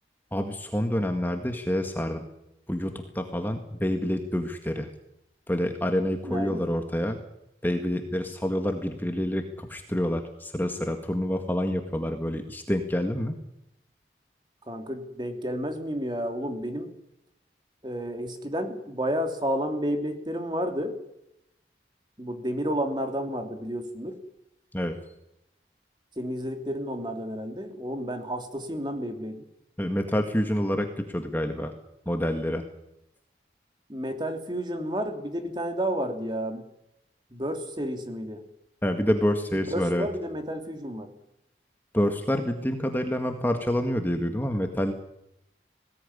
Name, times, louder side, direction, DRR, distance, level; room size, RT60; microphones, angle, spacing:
voice 1, 0.3-2.3 2.7-4.9 5.5-7.2 7.6-13.4 24.7-25.0 29.8-31.7 32.1-32.6 38.8-40.1 41.9-44.9, equal, 10° left, 5 dB, 1.8 m, -27 dB
voice 2, 6.2-6.6 14.7-16.9 17.8-20.9 22.2-24.1 26.2-29.4 33.9-36.6 37.3-38.4 39.7-41.1, equal, 25° right, 6 dB, 3.1 m, -31 dB
20.5 x 18.0 x 9.9 m, 0.81 s
head